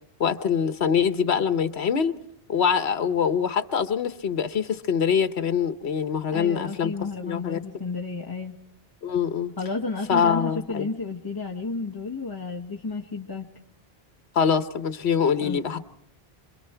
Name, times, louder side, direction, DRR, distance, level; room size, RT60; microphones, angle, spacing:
voice 1, 0.2-2.1 2.5-6.9 7.2-7.6 9.0-9.5 10.1-10.9 14.3-15.8, left 7 dB, 90° left, 11 dB, 1.3 m, -24 dB
voice 2, 6.3-8.5 9.6-13.5 15.4-15.6, left 4 dB, 20° left, 0 dB, 1.5 m, -32 dB
26.5 x 24.0 x 4.5 m, 0.68 s
omnidirectional pair, 1.1 m